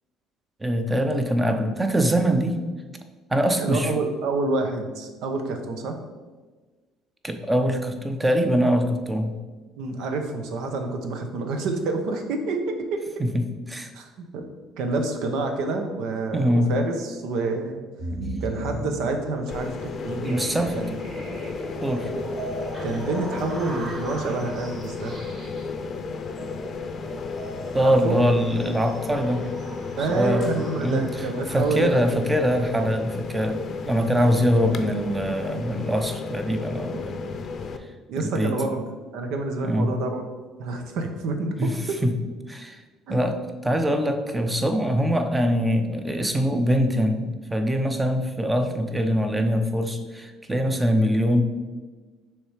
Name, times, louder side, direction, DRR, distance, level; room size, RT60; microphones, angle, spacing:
voice 1, 0.6-2.6 3.3-3.9 7.2-9.4 13.7-13.9 16.3-16.7 20.2-20.8 21.8-22.1 27.7-29.5 30.0-30.5 30.8-31.1 31.5-37.4 38.2-38.6 39.6-39.9 41.6-42.2 42.5-42.8 43.1-51.4, equal, 15° right, 6 dB, 0.7 m, -23 dB
voice 2, 3.6-6.0 9.8-13.0 13.9-14.4 14.8-17.8 18.4-20.9 22.1-22.2 22.8-25.2 27.8-28.2 30.0-32.0 38.1-38.8 39.1-40.3 40.6-42.0 43.1-43.2, right 3 dB, 75° right, 5 dB, 0.8 m, -28 dB
sound 1, 18.0-32.1, right 1 dB, 40° right, 1.7 m, -38 dB
sound 2, 19.5-37.8, left 4 dB, 45° left, 0.6 m, -34 dB
6.1 x 3.3 x 4.9 m, 1.3 s
cardioid pair, 95°, 0 cm